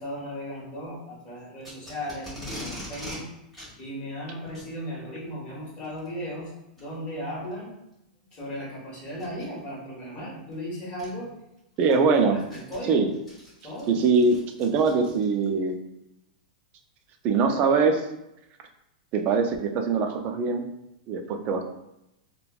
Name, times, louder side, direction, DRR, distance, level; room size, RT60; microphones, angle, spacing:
voice 1, 0.0-3.2 3.8-7.7 8.3-11.3 11.8-11.9 12.3-13.1 13.6-14.0, equal, 25° left, -5 dB, 1.2 m, -36 dB
Packing tape duct tape, 1.6-3.2 3.5-3.7 4.4-4.7 5.8-6.1 6.8-6.9 7.5-7.6 9.1-9.4 10.5-10.6 11.0-11.1 11.6-15.5, left 1 dB, 5° left, 1.2 m, -41 dB
voice 2, 11.8-12.4 12.9-13.1 13.9-15.8 17.2-18.1 19.1-20.6 21.1-21.6, right 4 dB, 35° right, 5 dB, 0.3 m, -22 dB
3.1 x 2.1 x 2.3 m, 0.86 s
supercardioid pair, 145°, 5 cm